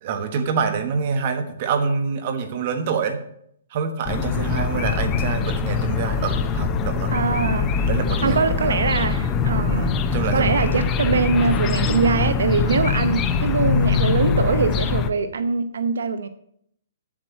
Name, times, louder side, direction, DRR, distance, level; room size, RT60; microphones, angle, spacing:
voice 1, 0.0-3.2 3.7-7.1 7.8-8.8 9.7-10.8 12.6-12.7, right 6 dB, 35° right, 1.3 m, -26 dB
sound 1, 4.1-15.1, left 6 dB, 15° left, 0.5 m, -23 dB
voice 2, 7.1-7.9 8.2-9.9 10.3-16.3, right 5 dB, 80° right, 0.8 m, -22 dB
8.4 x 7.4 x 7.1 m
hypercardioid pair, 170°, 0 cm